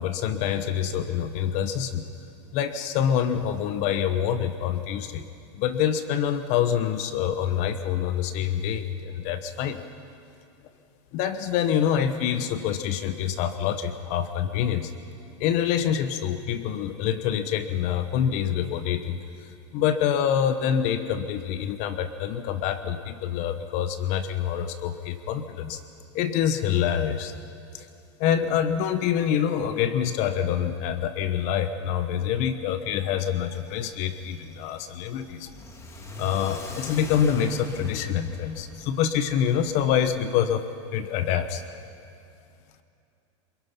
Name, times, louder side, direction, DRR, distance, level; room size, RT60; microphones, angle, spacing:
voice 1, 0.0-2.0 2.5-5.3 5.5-9.8 11.1-14.9 15.4-25.8 26.1-27.3 27.7-27.9 28.2-35.5 36.2-41.6, left 9 dB, 50° left, 10 dB, 1.1 m, -26 dB
Car / Accelerating revving vroom, 33.5-39.7, left 1 dB, 20° left, 2.2 m, -41 dB
28.0 x 22.0 x 5.8 m, 2.5 s
supercardioid pair, 130°, 16 cm